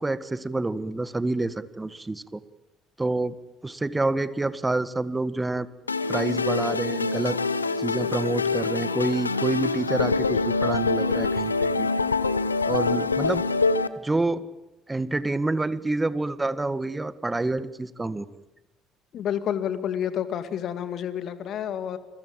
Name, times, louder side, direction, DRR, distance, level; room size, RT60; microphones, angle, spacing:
voice 1, 0.0-2.4 3.0-3.3 3.6-5.7 6.1-7.4 7.8-11.9 12.6-13.4 14.0-14.4 14.9-18.3, right 2 dB, 15° right, 14 dB, 1.7 m, -28 dB
sound 1, 5.9-13.9, left 4 dB, 90° left, 0.9 m, -25 dB
voice 2, 19.1-22.0, left 9 dB, 50° left, 11 dB, 2.2 m, -29 dB
28.5 x 22.0 x 8.9 m, 0.99 s
figure-of-eight pair, 50°, 0 cm